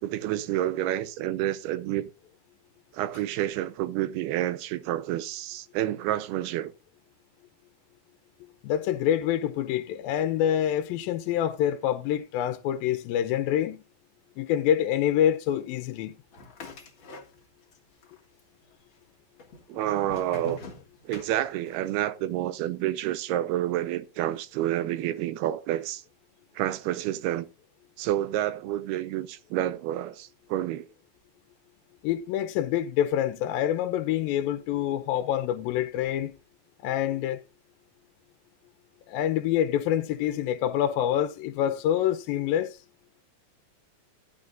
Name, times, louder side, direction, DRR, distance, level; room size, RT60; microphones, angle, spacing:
voice 1, 0.0-2.1 2.9-6.7 19.7-20.6 21.0-26.0 26.6-27.5 28.0-30.9, right 13 dB, 85° right, 2.8 m, -29 dB
voice 2, 8.4-13.8 14.4-16.1 32.0-36.3 36.8-37.4 39.1-42.8, left 10 dB, 75° left, 2.5 m, -26 dB
sound 1, 16.3-17.8 18.0-18.8 19.4-21.9, left 3 dB, 45° left, 1.7 m, -44 dB
13.0 x 11.5 x 2.6 m
omnidirectional pair, 4.5 m